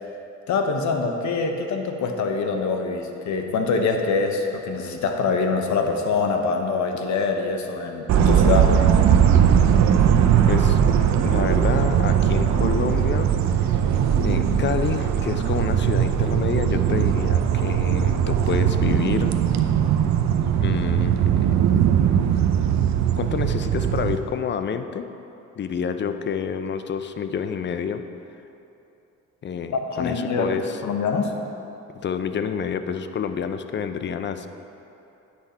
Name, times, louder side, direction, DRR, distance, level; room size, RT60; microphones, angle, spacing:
voice 1, 0.5-8.8 29.9-30.6 30.8-31.3, left 4 dB, 70° left, 4 dB, 0.9 m, -24 dB
sound 1, 8.1-24.2, right 8 dB, 65° right, 0.6 m, -19 dB
voice 2, 10.5-10.8 11.2-13.3 13.5-13.8 14.2-19.3 20.6-21.4 23.1-25.1 25.6-28.0 29.4-30.8 31.9-34.5, left 7 dB, 40° left, 9 dB, 0.5 m, -28 dB
9.6 x 5.9 x 4.3 m, 2.9 s
cardioid pair, 90°, 30 cm